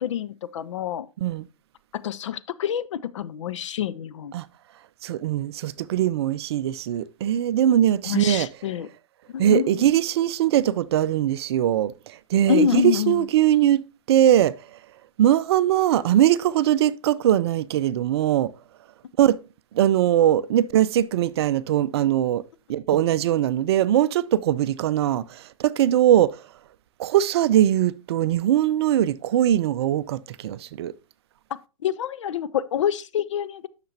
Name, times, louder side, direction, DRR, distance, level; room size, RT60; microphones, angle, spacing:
voice 1, 0.0-1.1 2.0-4.3 8.0-8.9 9.3-9.9 12.5-13.2 31.8-33.7, left 9 dB, 60° left, 0.6 m, -26 dB
voice 2, 5.0-8.5 9.4-13.8 14.1-14.6 15.2-18.5 19.2-19.4 19.7-22.4 22.7-26.4 27.0-30.9, right 11 dB, 50° right, 0.5 m, -21 dB
10.0 x 6.7 x 2.8 m
figure-of-eight pair, 120°, 18 cm